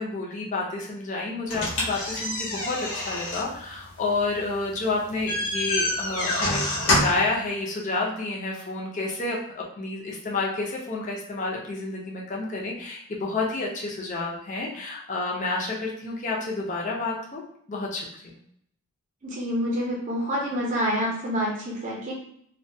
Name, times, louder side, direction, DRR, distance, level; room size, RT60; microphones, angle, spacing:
voice 1, 0.0-17.4 17.7-18.4, left 3 dB, 35° left, -3 dB, 0.5 m, -30 dB
sound 1, 1.5-7.3, left 1 dB, 85° left, 0.8 m, -28 dB
voice 2, 19.2-22.1, equal, 35° right, -4 dB, 0.6 m, -27 dB
2.2 x 2.1 x 2.6 m, 0.68 s
head